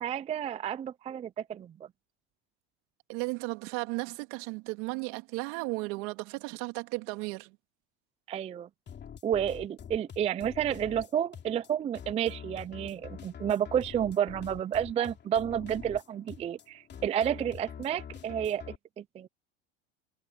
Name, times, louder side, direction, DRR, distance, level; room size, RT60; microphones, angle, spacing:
voice 1, 0.0-1.7 8.3-8.7 9.2-19.3, right 9 dB, 20° right, 0.4 m, -31 dB
voice 2, 3.1-7.6, right 27 dB, 65° right, 2.9 m, -35 dB
sound 1, 8.9-18.7, left 8 dB, 30° left, 2.9 m, -46 dB
supercardioid pair, 110°, 35 cm